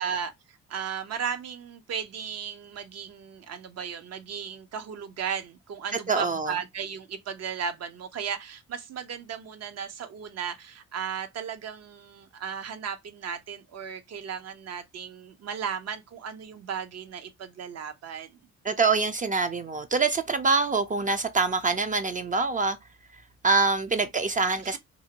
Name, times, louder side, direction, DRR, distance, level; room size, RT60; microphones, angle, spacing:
voice 1, 0.0-18.4 24.6-24.8, right 7 dB, 55° right, 0.7 m, -35 dB
voice 2, 6.1-6.6 18.6-22.8 23.4-24.8, right 4 dB, 25° right, 0.4 m, -25 dB
2.7 x 2.5 x 2.8 m
cardioid pair, 90°, 30 cm